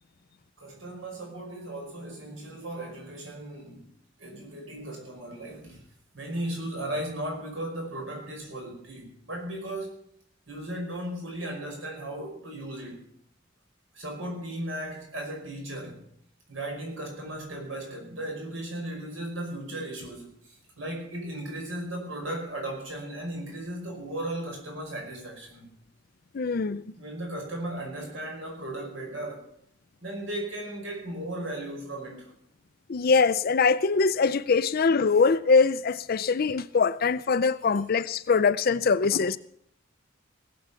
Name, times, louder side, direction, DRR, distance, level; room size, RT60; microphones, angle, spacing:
voice 1, 0.6-3.9 4.2-5.8 6.1-10.0 10.5-13.0 13.9-16.0 16.5-25.7 27.0-29.5 30.0-32.3, right 1 dB, 75° right, 0 dB, 5.3 m, -36 dB
voice 2, 26.3-26.8 32.9-39.4, left 5 dB, 50° left, 14 dB, 0.5 m, -23 dB
18.5 x 7.8 x 7.1 m, 0.68 s
head